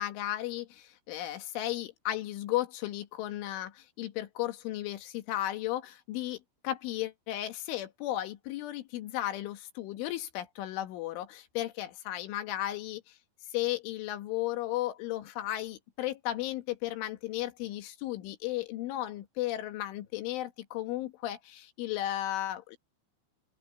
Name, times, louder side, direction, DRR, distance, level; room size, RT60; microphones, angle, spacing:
voice 1, 0.0-13.2 13.5-22.8, left 14 dB, 80° left, 4.1 m, -35 dB
open air
omnidirectional pair, 5.6 m